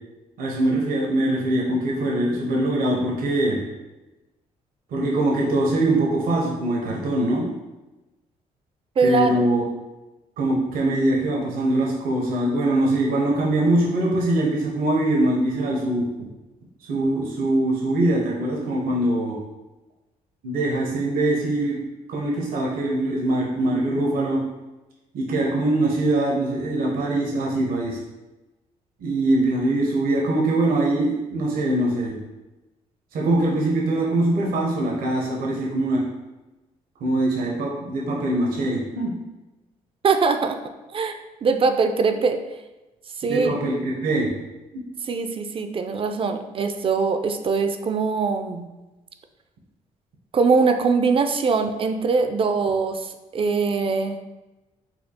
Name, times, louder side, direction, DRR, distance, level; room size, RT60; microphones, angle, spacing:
voice 1, 0.4-3.6 4.9-7.4 9.0-9.6 10.4-16.1 16.9-19.4 20.4-21.8 22.1-24.4 25.1-28.0 29.0-32.2 33.1-36.1 37.0-39.1 43.2-44.3 44.7-44.8, right 1 dB, 75° right, -3 dB, 0.8 m, -22 dB
voice 2, 9.0-9.4 40.0-40.6 40.9-42.4 43.2-43.6 45.1-48.7 50.3-54.2, right 4 dB, 40° right, 8 dB, 0.4 m, -22 dB
4.2 x 2.3 x 2.8 m, 1.1 s
supercardioid pair, 70°, 15 cm